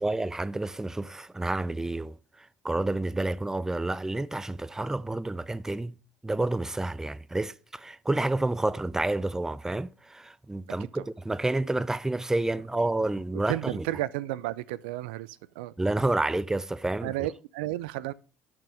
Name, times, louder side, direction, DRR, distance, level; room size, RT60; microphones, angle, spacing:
voice 1, 0.0-2.2 2.6-6.0 6.2-13.8 15.8-17.1, right 2 dB, 10° right, 0.4 m, -29 dB
voice 2, 13.3-15.7 17.0-18.1, right 16 dB, 75° right, 0.5 m, -33 dB
11.5 x 6.7 x 3.4 m
hypercardioid pair, 65°, 6 cm